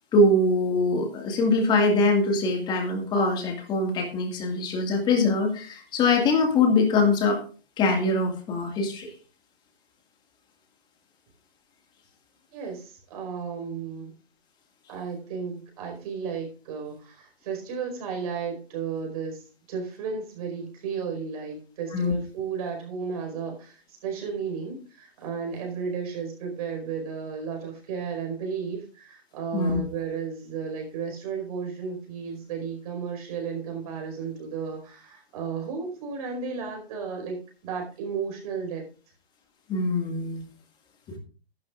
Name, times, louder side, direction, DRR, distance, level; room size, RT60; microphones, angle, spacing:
voice 1, 0.1-7.4 7.8-9.1 21.9-22.1 29.5-29.8 39.7-40.4 41.1-41.2, left 2 dB, 15° left, 3 dB, 2.0 m, -23 dB
voice 2, 12.5-14.1 14.9-37.4 37.6-38.8, right 6 dB, 35° right, 2 dB, 4.8 m, -33 dB
13.5 x 12.0 x 2.5 m, 0.37 s
hypercardioid pair, 150°, 32 cm